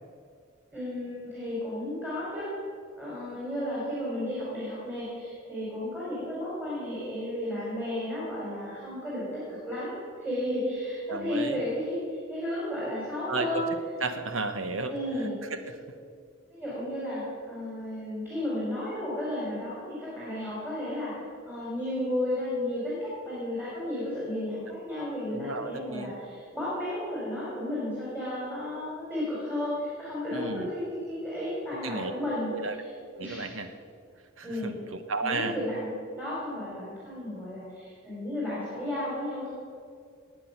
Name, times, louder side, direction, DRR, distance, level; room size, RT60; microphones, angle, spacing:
voice 1, 0.7-2.5 3.0-13.7 14.9-15.4 16.5-32.9 33.2-33.5 34.4-34.7 35.2-39.5, left 1 dB, 10° right, -8 dB, 4.5 m, -33 dB
voice 2, 11.1-11.6 13.3-13.6 14.0-14.9 15.5-15.8 25.3-26.1 30.3-30.7 31.8-32.1 32.5-32.7 33.1-33.7 34.4-35.6, right 3 dB, 80° right, 8 dB, 1.3 m, -33 dB
19.0 x 8.8 x 5.9 m, 2.3 s
head